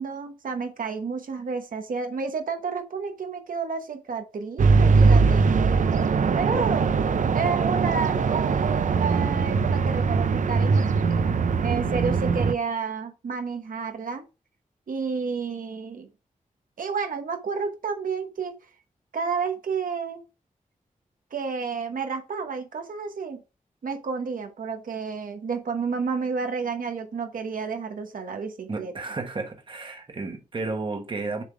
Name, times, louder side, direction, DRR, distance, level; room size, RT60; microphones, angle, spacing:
voice 1, 0.0-5.7 6.3-6.9 7.3-11.2 11.6-14.2 14.9-16.1 16.8-18.5 19.1-20.2 21.3-23.4 23.8-29.2, right 5 dB, 80° right, 1.0 m, -30 dB
sound 1, 4.6-12.5, right 4 dB, 65° right, 0.5 m, -21 dB
voice 2, 28.7-31.4, right 3 dB, 35° right, 1.2 m, -32 dB
7.1 x 3.6 x 4.7 m
wide cardioid pair, 155°, 14 cm